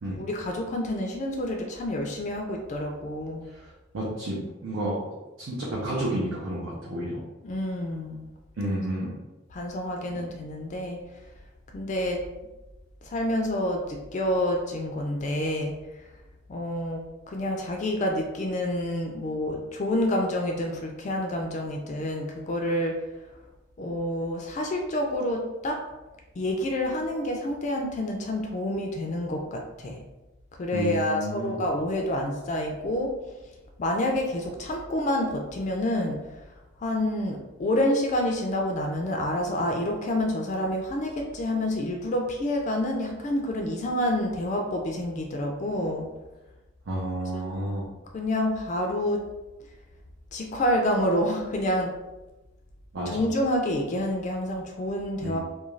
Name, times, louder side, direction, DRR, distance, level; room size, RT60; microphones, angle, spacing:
voice 1, 0.2-3.5 7.4-8.3 9.5-11.0 11.7-12.2 13.0-15.7 16.5-23.0 23.8-25.8 26.4-30.0 30.6-33.1 33.8-36.2 36.8-46.1 47.3-47.4 48.1-49.2 50.3-51.9 53.1-55.4, left 1 dB, 35° left, 2 dB, 0.3 m, -28 dB
voice 2, 3.9-5.0 5.4-7.2 8.6-9.1 30.7-31.6 46.9-47.9 52.9-53.2 55.2-55.4, right 1 dB, 70° right, -6 dB, 0.6 m, -31 dB
2.4 x 2.2 x 3.0 m, 1.1 s
head